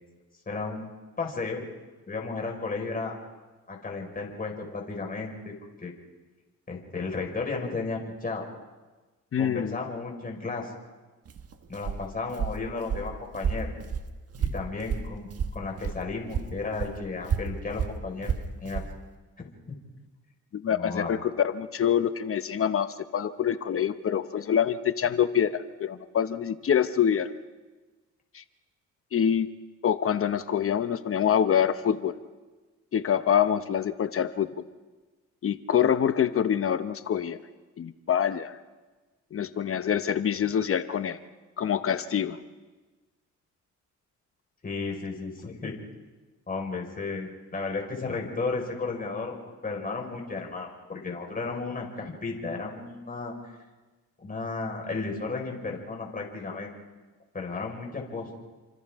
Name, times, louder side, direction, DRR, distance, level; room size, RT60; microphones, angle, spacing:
voice 1, 0.4-0.9 1.2-1.6 2.1-3.1 3.7-5.5 5.8-5.9 6.7-8.5 9.4-10.7 11.7-13.7 14.4-15.3 15.5-18.3 18.6-18.8 19.4-19.8 20.7-21.2 44.6-45.8 46.5-49.3 49.6-53.6 54.2-56.7 57.3-58.3, left 3 dB, 30° left, 0 dB, 4.9 m, -34 dB
voice 2, 9.3-9.8 20.5-27.3 28.3-28.4 29.1-29.5 29.8-32.1 32.9-34.5 35.4-37.4 37.8-38.6 39.3-41.2 41.6-42.4, left 8 dB, 45° left, 11 dB, 0.9 m, -25 dB
Walk footsteps, 11.2-16.0 16.3-18.9, right 6 dB, 50° right, 1.5 m, -31 dB
29.5 x 25.5 x 3.6 m, 1.2 s
cardioid pair, 90°, 30 cm